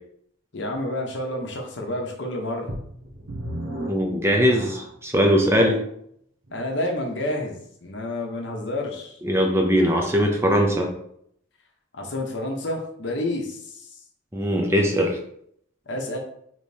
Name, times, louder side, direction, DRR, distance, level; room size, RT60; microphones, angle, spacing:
voice 1, 0.5-2.7 5.4-5.8 6.5-9.2 11.9-13.9 15.9-16.2, left 1 dB, 60° left, 1 dB, 0.8 m, -29 dB
sound 1, 2.7-5.1 5.8-5.9 6.5-6.6, right 1 dB, 85° right, 0.9 m, -35 dB
voice 2, 3.9-5.8 9.2-10.9 14.3-15.2, equal, 10° right, 1 dB, 0.5 m, -20 dB
5.0 x 3.0 x 2.8 m, 0.70 s
head